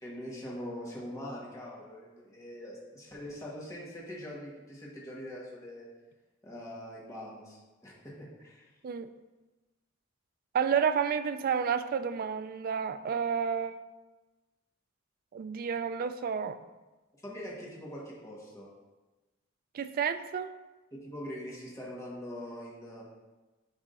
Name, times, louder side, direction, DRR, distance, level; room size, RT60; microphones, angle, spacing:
voice 1, 0.0-5.9 6.4-8.7 17.2-18.7 20.9-23.0, equal, 15° left, -5 dB, 1.3 m, -43 dB
voice 2, 10.5-13.7 15.3-16.6 19.7-20.5, right 7 dB, 45° right, 11 dB, 0.3 m, -30 dB
10.5 x 3.6 x 2.5 m, 1.2 s
head